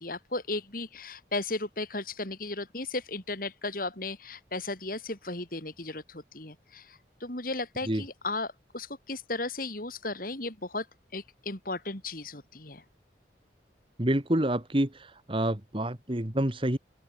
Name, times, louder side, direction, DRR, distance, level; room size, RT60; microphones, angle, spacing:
voice 1, 0.0-10.9 11.1-12.8, left 2 dB, 50° left, 4.2 m, -35 dB
voice 2, 14.0-14.9 15.3-16.8, right 1 dB, 30° right, 1.8 m, -27 dB
open air
head